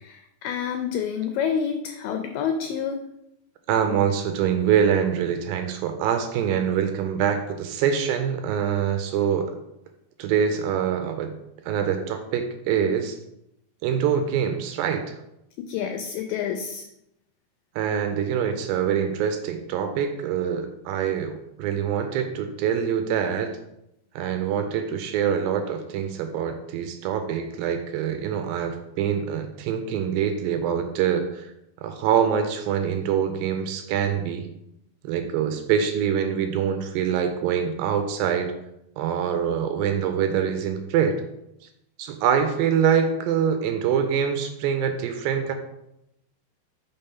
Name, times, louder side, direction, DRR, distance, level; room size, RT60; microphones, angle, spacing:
voice 1, 0.0-3.0 15.6-16.8, left 7 dB, 85° left, 5 dB, 2.0 m, -28 dB
voice 2, 3.7-9.6 10.2-11.3 11.7-13.2 13.8-15.1 17.8-23.5 24.2-31.4 31.8-34.5 35.0-38.5 39.0-41.2 42.0-45.5, right 8 dB, 80° right, 6 dB, 2.2 m, -24 dB
5.6 x 3.5 x 5.5 m, 0.82 s
omnidirectional pair, 4.4 m